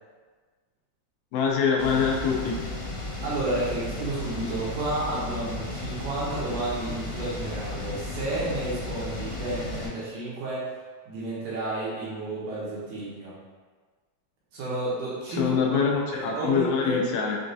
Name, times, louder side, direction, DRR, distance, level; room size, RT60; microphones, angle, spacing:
voice 1, 1.3-2.6 15.3-17.4, left 6 dB, 90° left, -1 dB, 2.5 m, -24 dB
sound 1, 1.8-9.9, left 2 dB, 70° left, 2.1 m, -34 dB
voice 2, 3.2-10.7 11.1-13.4 14.5-15.6 15.9-17.1, right 2 dB, 75° right, -7 dB, 2.0 m, -31 dB
6.2 x 2.3 x 2.6 m, 1.4 s
omnidirectional pair, 4.2 m